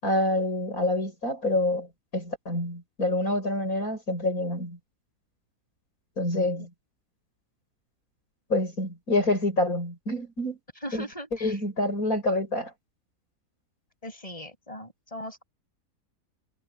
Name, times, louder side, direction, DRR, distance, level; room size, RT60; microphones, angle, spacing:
voice 1, 0.0-4.8 6.2-6.7 8.5-10.6 10.9-11.0 11.4-12.7, left 1 dB, 60° left, 7.3 m, -27 dB
voice 2, 10.8-11.6 14.0-15.4, equal, 20° left, 7.6 m, -39 dB
omnidirectional pair, 1.7 m